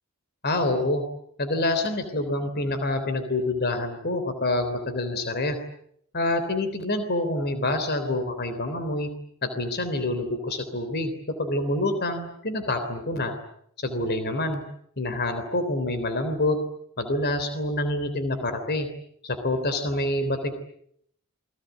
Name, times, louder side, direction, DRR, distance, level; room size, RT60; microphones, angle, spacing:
voice 1, 0.4-1.0 1.4-5.6 6.1-9.1 9.4-11.1 11.4-13.3 13.8-14.6 15.0-16.6 17.0-18.9 19.2-20.5, left 2 dB, 50° left, 9 dB, 3.5 m, -27 dB
29.0 x 21.5 x 9.3 m, 0.71 s
head